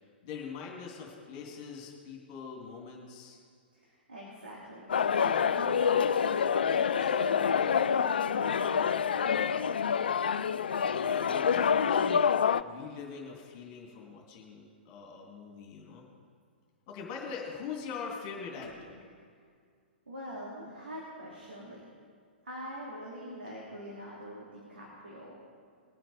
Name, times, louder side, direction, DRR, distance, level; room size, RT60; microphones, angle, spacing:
voice 1, 0.2-3.4 10.8-12.3 12.6-16.0 16.9-19.1, left 5 dB, 35° left, -1 dB, 2.7 m, -43 dB
voice 2, 3.7-9.6 20.1-21.8 22.4-25.4, equal, 75° right, -5 dB, 3.1 m, -44 dB
sound 1, 4.9-12.6, left 7 dB, 60° left, 0.4 m, -27 dB
21.0 x 7.9 x 4.9 m, 2.1 s
figure-of-eight pair, 110°, 6 cm